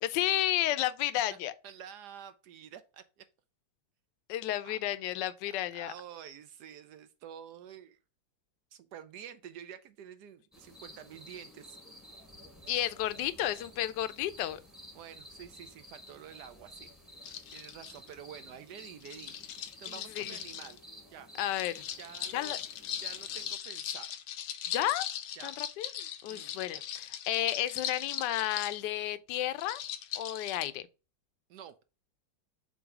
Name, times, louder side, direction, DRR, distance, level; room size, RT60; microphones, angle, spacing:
voice 1, 0.0-1.5 4.3-5.9 12.7-14.6 20.2-20.4 21.4-21.7 22.3-22.6 24.7-25.1 25.4-25.9 26.2-29.8 30.2-30.8, left 13 dB, 75° left, 1.2 m, -32 dB
voice 2, 1.6-3.3 4.6-4.8 5.5-8.0 8.7-11.8 14.9-16.9 17.2-19.3 19.8-20.8 21.1-21.3 22.0-22.5 23.0-24.2 25.4-25.5 26.3-26.6 31.5-31.7, right 9 dB, 70° right, 1.1 m, -49 dB
sound 1, 10.5-23.6, equal, ahead, 1.2 m, -52 dB
sound 2, 17.2-18.2 19.0-20.8 21.5-28.8 29.6-30.7, left 10 dB, 90° left, 1.5 m, -39 dB
7.8 x 2.7 x 4.7 m
omnidirectional pair, 2.1 m